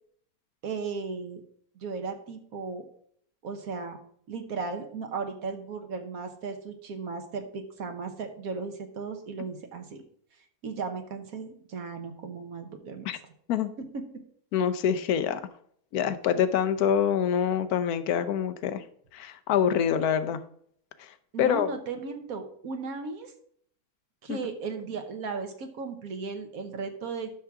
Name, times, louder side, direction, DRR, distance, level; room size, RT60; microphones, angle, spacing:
voice 1, 0.6-1.4 1.8-2.8 3.4-4.0 4.3-10.0 10.6-13.1 13.8-14.0 21.3-23.3 24.2-27.3, right 4 dB, 75° right, 6 dB, 1.4 m, -36 dB
voice 2, 14.5-15.4 15.9-18.8 19.1-20.4 21.4-21.7 24.3-24.4, left 8 dB, 90° left, 11 dB, 1.2 m, -25 dB
11.5 x 5.9 x 3.6 m, 0.64 s
omnidirectional pair, 1.5 m